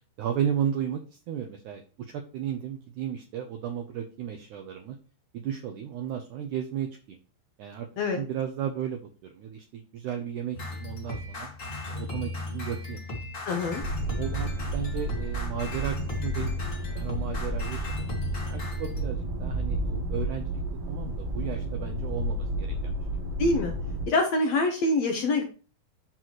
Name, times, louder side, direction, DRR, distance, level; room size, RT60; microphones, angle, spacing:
voice 1, 0.2-5.0 5.3-7.2 7.6-7.9 8.1-11.5 11.9-13.0 13.5-13.7 14.2-18.1 18.5-20.4 20.9-22.9, right 9 dB, 80° right, 4 dB, 1.8 m, -34 dB
sound 1, 10.5-19.0, left 2 dB, 30° left, 1.5 m, -36 dB
voice 2, 13.4-13.8 23.4-23.7 24.1-25.4, left 2 dB, 75° left, 3 dB, 1.5 m, -25 dB
sound 2, 13.8-24.1, right 1 dB, 45° right, 1.7 m, -32 dB
12.0 x 4.0 x 3.1 m, 0.35 s
omnidirectional pair, 4.5 m